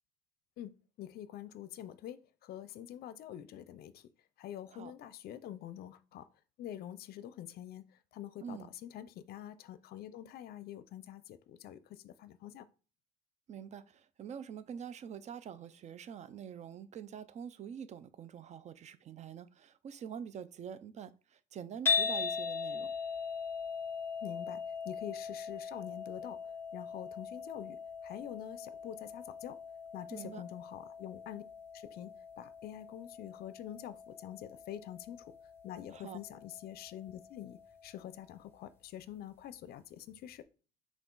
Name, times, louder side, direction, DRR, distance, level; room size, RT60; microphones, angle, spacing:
voice 1, 0.6-4.0 4.4-6.2 6.6-7.8 8.1-12.6 24.2-26.4 26.7-27.8 28.0-29.6 29.9-31.4 31.7-35.3 35.6-40.4, left 11 dB, 65° left, 0.5 m, -46 dB
voice 2, 8.4-8.7 13.5-22.9 30.1-30.4 35.9-36.2, right 8 dB, 45° right, 0.4 m, -45 dB
sound 1, 21.9-38.1, left 5 dB, 15° left, 0.9 m, -40 dB
5.9 x 2.4 x 3.8 m
cardioid pair, 110°, 17 cm